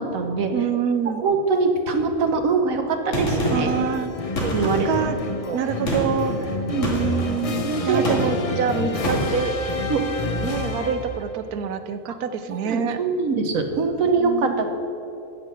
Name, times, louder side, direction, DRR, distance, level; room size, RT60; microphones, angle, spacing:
voice 1, 0.0-0.5 1.2-3.7 4.4-5.1 5.5-5.6 6.7-6.9 7.5-8.2 9.9-10.0 12.6-14.7, right 4 dB, 70° right, 5 dB, 1.4 m, -23 dB
voice 2, 0.5-1.2 3.5-4.1 4.8-5.2 5.5-6.5 6.9-9.5 10.4-13.0 14.2-14.7, right 7 dB, 90° right, 10 dB, 1.3 m, -26 dB
Gunshot gunfire, 3.1-3.8 4.4-5.1 5.9-6.3 6.8-7.3 8.0-8.5 9.0-9.4, equal, 60° left, 2.5 m, -26 dB
sound 1, 3.4-11.3, left 2 dB, 40° left, 0.5 m, -29 dB
15.0 x 6.2 x 6.5 m, 2.8 s
omnidirectional pair, 1.5 m